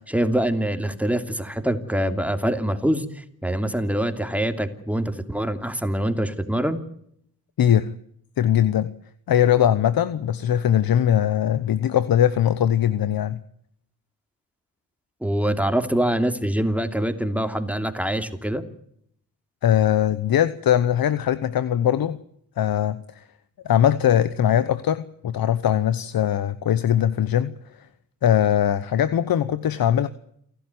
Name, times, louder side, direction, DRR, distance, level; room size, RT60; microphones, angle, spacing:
voice 1, 0.0-6.8 15.2-18.6, right 1 dB, 5° right, 2.9 m, -24 dB
voice 2, 7.6-7.9 8.4-8.9 9.3-13.4 19.6-22.2 22.6-23.2 23.6-27.5 28.2-30.1, left 10 dB, 75° left, 1.0 m, -21 dB
29.0 x 12.0 x 9.6 m
cardioid pair, 60°, 36 cm